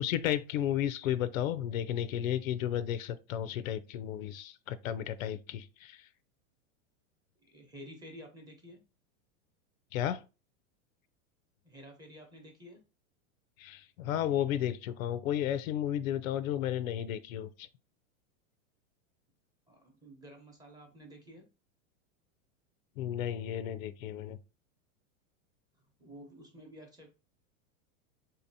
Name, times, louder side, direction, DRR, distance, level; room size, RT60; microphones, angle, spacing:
voice 1, 0.0-6.1 9.9-10.2 13.6-17.7 23.0-24.4, left 11 dB, 90° left, 0.6 m, -33 dB
voice 2, 7.5-8.8 11.6-12.8 19.7-21.5 25.7-27.1, equal, 10° right, 0.8 m, -51 dB
4.0 x 2.8 x 2.6 m
supercardioid pair, 145°, 40 cm